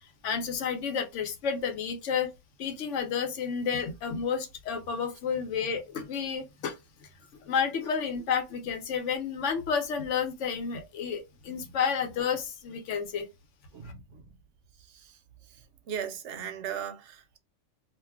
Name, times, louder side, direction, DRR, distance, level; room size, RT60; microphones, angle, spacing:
voice 1, 0.2-2.3 2.6-6.8 7.4-13.3, left 6 dB, 80° left, 1.0 m, -31 dB
voice 2, 13.7-14.2 15.9-17.4, right 8 dB, 70° right, 0.8 m, -37 dB
2.5 x 2.2 x 3.4 m
omnidirectional pair, 1.3 m